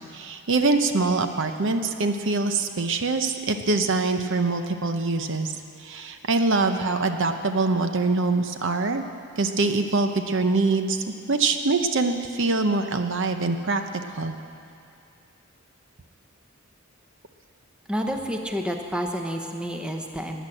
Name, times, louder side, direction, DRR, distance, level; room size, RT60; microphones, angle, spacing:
voice 1, 0.1-5.5 5.8-9.0 9.4-14.3, right 3 dB, 60° right, 7 dB, 0.8 m, -24 dB
voice 2, 17.9-20.5, equal, 5° right, 3 dB, 1.0 m, -29 dB
17.0 x 10.0 x 7.8 m, 2.5 s
head